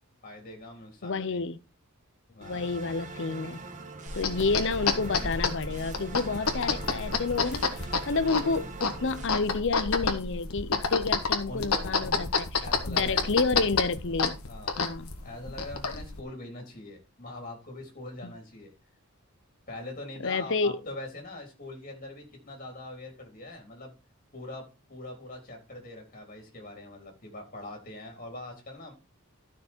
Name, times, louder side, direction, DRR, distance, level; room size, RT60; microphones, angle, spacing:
voice 1, 0.2-1.4 2.3-2.7 11.5-12.3 12.6-13.3 14.5-14.7 15.2-18.7 19.7-23.9 24.3-28.9, left 2 dB, 40° left, 3.6 m, -42 dB
voice 2, 1.0-1.6 2.4-3.6 4.1-7.8 8.1-12.3 12.9-14.4 14.8-15.1 18.2-18.3 20.2-20.8, left 4 dB, 55° left, 0.7 m, -29 dB
sound 1, 2.4-9.3, right 3 dB, 35° right, 1.4 m, -42 dB
sound 2, 4.1-16.2, left 4 dB, 80° left, 1.8 m, -30 dB
12.5 x 6.1 x 4.5 m
head